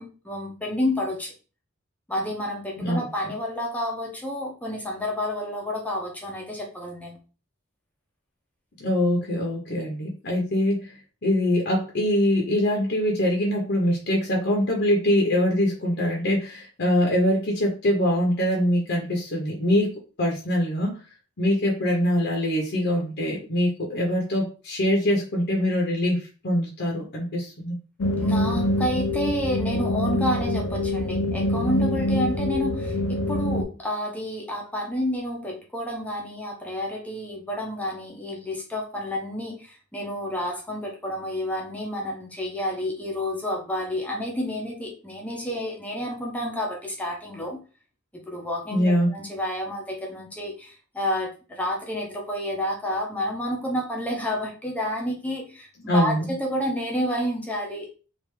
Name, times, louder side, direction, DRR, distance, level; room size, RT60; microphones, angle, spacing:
voice 1, 0.0-1.3 2.1-7.2 28.2-47.6 48.3-58.1, left 1 dB, 5° left, -1 dB, 0.7 m, -30 dB
voice 2, 8.8-11.0 11.2-19.9 20.2-21.0 21.4-27.8 48.7-49.1 55.9-56.2, equal, 55° left, -1 dB, 0.8 m, -23 dB
sound 1, 28.0-33.6, left 1 dB, 90° left, 0.5 m, -25 dB
3.3 x 2.5 x 3.1 m, 0.34 s
head